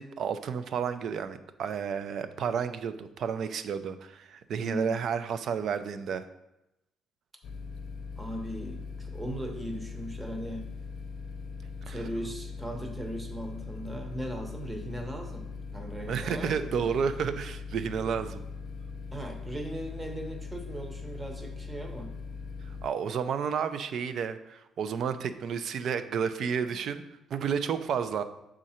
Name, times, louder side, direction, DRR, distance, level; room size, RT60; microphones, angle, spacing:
voice 1, 0.0-6.2 11.9-12.0 16.0-18.4 22.8-27.0 27.3-28.2, right 7 dB, 55° right, 11 dB, 0.4 m, -31 dB
voice 2, 4.6-5.0 8.2-10.6 11.8-15.5 15.7-17.0 19.1-22.1, right 1 dB, 15° right, 3 dB, 0.9 m, -38 dB
sound 1, 7.4-22.9, left 4 dB, 60° left, 0.6 m, -40 dB
6.4 x 3.7 x 4.3 m, 0.91 s
cardioid pair, 135°, 0 cm